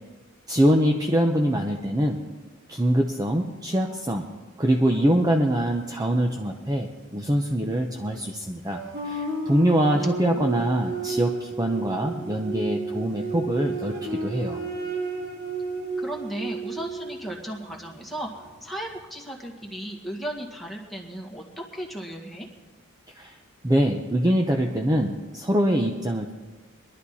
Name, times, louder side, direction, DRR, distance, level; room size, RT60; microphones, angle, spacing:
voice 1, 0.5-2.2 2.7-4.3 4.6-14.6 23.2-23.4 23.6-26.3, equal, 20° right, 2 dB, 0.7 m, -24 dB
sound 1, 8.7-18.1, right 3 dB, 60° right, 2.0 m, -32 dB
voice 2, 9.9-10.6 16.0-18.3 18.6-22.5, right 1 dB, ahead, -1 dB, 1.9 m, -35 dB
21.5 x 12.0 x 4.2 m, 1.3 s
head